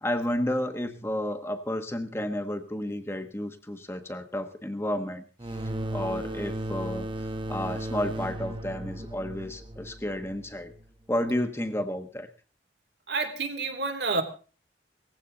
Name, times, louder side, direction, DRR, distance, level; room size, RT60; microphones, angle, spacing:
voice 1, 0.0-5.6 5.9-10.7 11.1-12.3, left 1 dB, 15° left, 7 dB, 1.2 m, -31 dB
sound 1, 5.4-10.8, right 1 dB, 25° right, 1.1 m, -35 dB
voice 2, 13.1-14.2, right 3 dB, 70° right, 6 dB, 3.0 m, -29 dB
19.5 x 15.5 x 3.9 m, 0.38 s
head